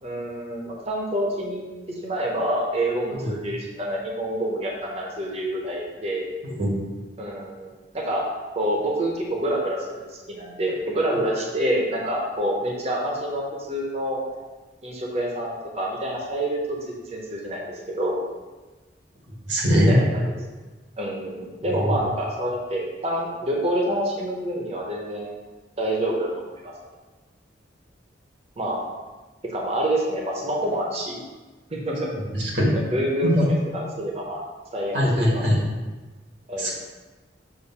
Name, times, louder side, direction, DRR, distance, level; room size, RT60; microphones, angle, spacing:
voice 1, 0.0-6.3 7.2-7.7 7.9-8.3 8.6-14.2 14.8-16.8 17.1-18.2 19.7-20.2 21.0-25.4 25.8-26.7 28.6-28.8 29.5-31.2 31.7-32.2 32.7-34.4 34.7-35.4 36.5-36.7, right 1 dB, 35° right, -2 dB, 0.8 m, -27 dB
voice 2, 19.5-20.0 21.7-22.0 32.3-32.8 33.2-33.3 34.9-35.6 36.6-36.7, equal, 80° right, -3 dB, 1.7 m, -21 dB
6.8 x 2.6 x 5.5 m, 1.2 s
head